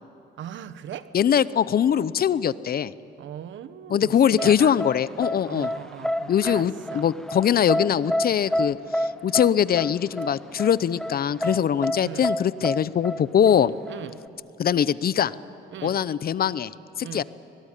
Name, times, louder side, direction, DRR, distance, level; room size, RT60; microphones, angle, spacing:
voice 1, 0.4-1.1 3.2-4.8 5.5-7.1 12.0-12.3 13.9-14.2 15.7-16.0 17.0-17.2, right 10 dB, 70° right, 14 dB, 1.1 m, -38 dB
voice 2, 1.1-2.9 3.9-5.7 6.3-13.7 14.6-15.3 15.8-16.7 17.0-17.2, left 9 dB, 50° left, 18 dB, 0.7 m, -22 dB
sound 1, 4.4-14.3, equal, 5° left, 0.9 m, -29 dB
23.5 x 19.5 x 10.0 m, 2.6 s
cardioid pair, 90°, 20 cm